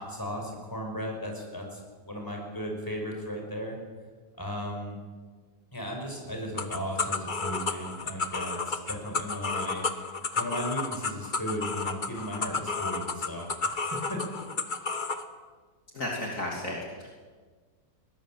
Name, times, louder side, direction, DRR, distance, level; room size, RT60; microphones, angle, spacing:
voice 1, 0.0-1.8 2.1-3.8 4.3-5.0 5.7-9.8 10.4-14.2, equal, 10° left, 1 dB, 5.4 m, -36 dB
sound 1, 6.6-15.2, left 4 dB, 30° left, 1.2 m, -32 dB
voice 2, 15.9-17.1, left 1 dB, 45° left, -2 dB, 3.4 m, -33 dB
21.5 x 19.5 x 7.6 m, 1.5 s
omnidirectional pair, 1.9 m